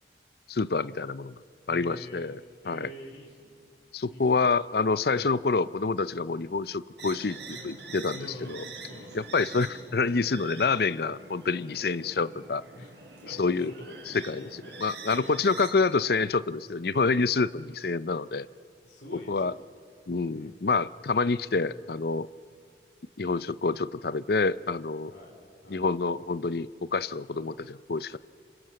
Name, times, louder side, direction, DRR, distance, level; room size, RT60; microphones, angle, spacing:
voice 1, 0.5-1.4 1.7-2.4 2.6-2.9 3.9-8.6 9.1-12.6 13.3-13.7 14.2-18.5 19.3-19.5 20.1-22.3 23.2-25.1 25.7-28.2, left 4 dB, 60° left, 17 dB, 0.6 m, -27 dB
voice 2, 1.7-2.4 2.6-3.6 4.1-4.4 5.1-5.3 8.2-9.3 12.8-14.0 14.3-15.5 18.8-19.6 20.3-20.6 25.1-25.4 25.6-25.8, equal, 80° left, 0 dB, 4.4 m, -47 dB
sound 1, 7.0-15.7, right 3 dB, 70° right, 4.9 m, -45 dB
29.0 x 26.5 x 7.7 m, 2.5 s
head